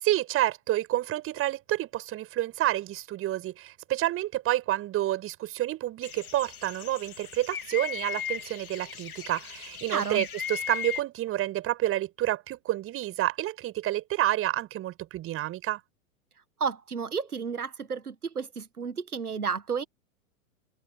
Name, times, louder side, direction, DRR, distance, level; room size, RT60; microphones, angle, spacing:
voice 1, 0.0-15.8, right 14 dB, 30° right, 6.9 m, -29 dB
sound 1, 6.0-11.0, left 8 dB, 75° left, 2.9 m, -37 dB
voice 2, 9.9-10.3 16.6-19.8, right 6 dB, 90° right, 1.5 m, -32 dB
figure-of-eight pair, 105°, 44 cm